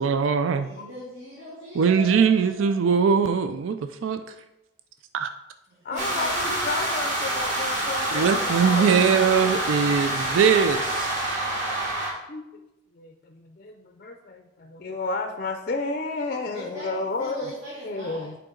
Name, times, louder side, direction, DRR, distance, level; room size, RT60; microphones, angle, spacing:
voice 1, 0.0-0.7 1.8-3.8 4.0-4.2 5.1-5.3 8.1-11.1, right 6 dB, 80° right, 9 dB, 0.4 m, -21 dB
voice 2, 0.6-3.0 5.7-6.3 8.8-10.2 16.5-18.3, right 1 dB, 60° right, -7 dB, 2.0 m, -40 dB
voice 3, 5.8-9.7 12.3-12.5 12.9-17.5 17.8-18.4, left 3 dB, 45° left, 5 dB, 0.4 m, -32 dB
sound 1, 6.0-12.1, right 1 dB, 40° right, 1.7 m, -27 dB
7.8 x 4.8 x 3.8 m, 0.92 s
head